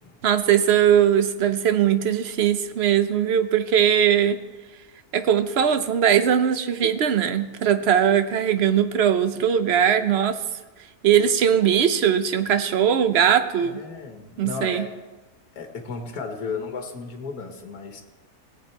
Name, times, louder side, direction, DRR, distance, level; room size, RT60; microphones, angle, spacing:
voice 1, 0.2-4.4 5.1-10.4 11.0-13.8 14.4-14.9, right 9 dB, 55° right, 10 dB, 0.8 m, -20 dB
voice 2, 13.6-15.0 15.5-18.0, left 4 dB, 80° left, 4 dB, 1.7 m, -34 dB
17.5 x 7.9 x 4.4 m, 1.2 s
omnidirectional pair, 1.6 m